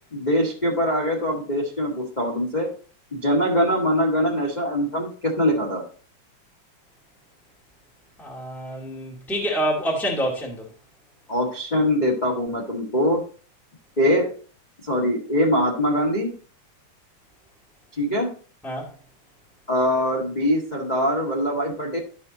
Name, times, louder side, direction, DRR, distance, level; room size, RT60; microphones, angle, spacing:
voice 1, 0.1-2.7 3.1-5.8 11.3-13.2 14.0-14.3 14.8-16.3 18.0-18.3 19.7-22.0, equal, 20° left, 1.3 m, -23 dB
voice 2, 8.2-10.6 18.6-18.9, equal, ahead, 1.5 m, -27 dB
12.0 x 4.2 x 4.0 m
omnidirectional pair, 3.4 m